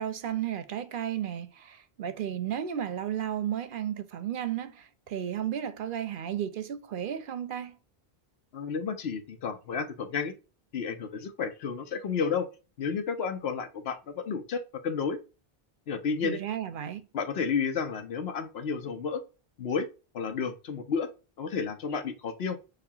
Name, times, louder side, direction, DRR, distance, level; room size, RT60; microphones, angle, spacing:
voice 1, 0.0-7.8 16.2-17.1, right 10 dB, 65° right, 0.7 m, -33 dB
voice 2, 8.5-10.3 10.7-12.5 12.8-15.2 15.9-16.4 17.1-19.2 19.6-19.9 20.1-21.1 21.4-22.6, left 5 dB, 80° left, 1.0 m, -31 dB
6.7 x 2.4 x 2.7 m
omnidirectional pair, 1.0 m